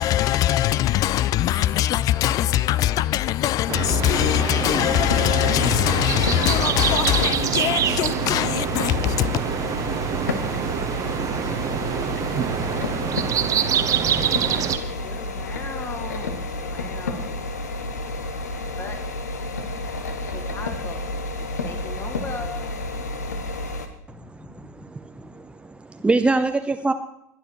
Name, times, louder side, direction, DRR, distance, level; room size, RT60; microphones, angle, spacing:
voice 1, 0.0-9.4, left 13 dB, 45° left, 0.5 m, -22 dB
sound 1, 3.7-14.8, right 9 dB, 40° right, 1.3 m, -25 dB
sound 2, 5.0-23.9, left 2 dB, 75° left, 1.3 m, -30 dB
voice 2, 13.6-17.7 18.5-19.0 20.1-23.0 24.1-24.7 26.4-26.5, left 4 dB, 30° left, 2.5 m, -40 dB
voice 3, 24.1-24.4 24.8-26.9, right 3 dB, 10° right, 0.8 m, -24 dB
21.0 x 10.5 x 4.7 m
figure-of-eight pair, 70°, 9 cm